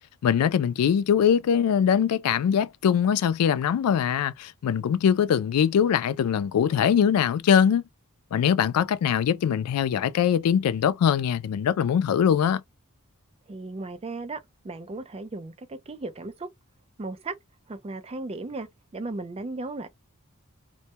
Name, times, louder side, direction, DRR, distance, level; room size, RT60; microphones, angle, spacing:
voice 1, 0.2-7.8 8.3-12.6, left 8 dB, 85° left, 0.3 m, -22 dB
voice 2, 13.5-14.4 14.6-16.5 17.0-17.4 17.7-18.7 18.9-19.9, right 2 dB, 25° right, 0.4 m, -35 dB
2.2 x 2.1 x 2.8 m
head